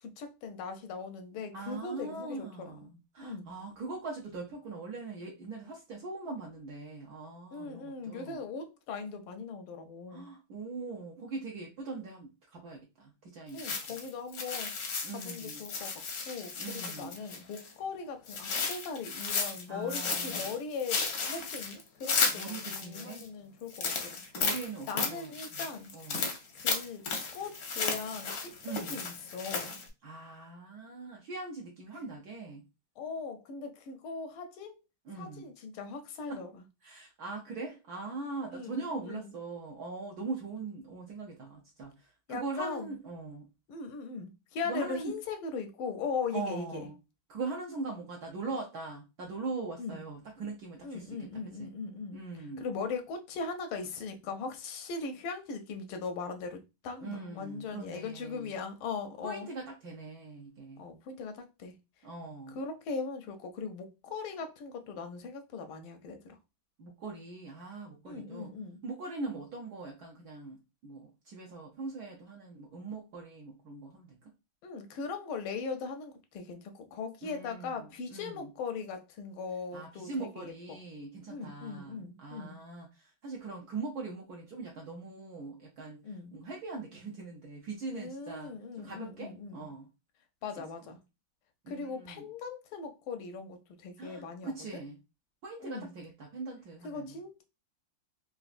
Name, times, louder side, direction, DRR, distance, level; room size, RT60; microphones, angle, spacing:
voice 1, 0.0-2.9 3.2-3.5 7.5-10.3 13.5-15.9 16.2-24.2 24.9-29.7 32.1-32.2 33.0-34.8 35.2-36.6 38.5-39.3 42.3-42.9 43.7-46.9 49.8-50.0 50.8-52.2 52.6-59.5 60.8-61.7 62.5-66.4 68.0-68.8 74.6-80.8 81.3-82.6 86.0-86.3 87.9-89.7 90.4-91.0 91.7-94.8 95.6-95.9 96.8-97.4, left 4 dB, 85° left, 1.5 m, -39 dB
voice 2, 1.5-8.4 10.1-14.0 15.0-15.6 16.6-17.2 19.7-20.5 21.3-21.5 22.3-23.3 24.3-25.7 25.9-26.3 28.6-29.0 30.0-32.6 35.1-35.5 36.3-36.4 36.8-43.5 44.6-45.1 46.3-47.0 47.3-51.3 51.6-51.7 52.1-52.6 57.0-58.5 59.2-60.9 62.0-62.6 66.8-68.5 68.8-74.3 77.2-78.5 79.7-86.0 86.3-89.9 91.6-92.2 94.0-95.0 95.4-97.2, right 3 dB, 70° right, 0.9 m, -41 dB
sound 1, 13.6-17.7 18.3-19.6 19.9-23.2 23.7-29.9, left 4 dB, 65° left, 0.9 m, -34 dB
4.0 x 2.3 x 2.4 m
omnidirectional pair, 2.3 m